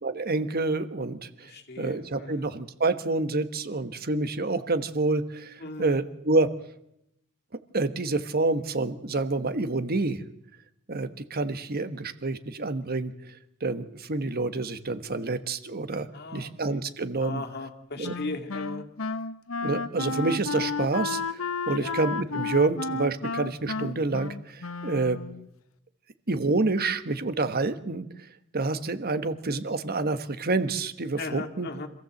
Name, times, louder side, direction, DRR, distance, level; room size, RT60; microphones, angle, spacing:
voice 1, 0.0-1.5 1.8-6.5 7.7-10.2 10.9-13.1 13.6-17.4 18.0-18.1 19.6-25.2 26.3-28.1 28.5-31.7, right 3 dB, 45° right, 10 dB, 1.3 m, -28 dB
voice 2, 1.4-2.5 5.6-6.0 16.1-16.8 17.2-18.8 21.7-22.0 31.2-31.9, left 3 dB, 50° left, 3 dB, 2.2 m, -37 dB
Wind instrument woodwind instrument, 18.0-25.5, left 4 dB, 80° left, 1.0 m, -32 dB
26.0 x 16.0 x 7.8 m, 0.82 s
head